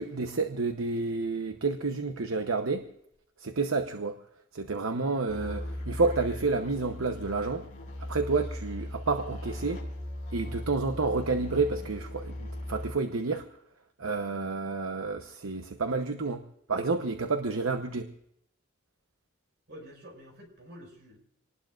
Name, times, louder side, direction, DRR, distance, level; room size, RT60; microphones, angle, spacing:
voice 1, 0.0-2.9 3.4-4.2 4.5-7.7 8.0-9.8 10.3-13.5 14.0-16.4 16.7-18.1, right 3 dB, 75° right, 6 dB, 0.9 m, -30 dB
sound 1, 5.3-12.9, left 1 dB, 35° left, 5.2 m, -38 dB
voice 2, 19.7-21.2, equal, 55° right, 2 dB, 5.9 m, -48 dB
26.5 x 19.5 x 2.5 m, 0.76 s
head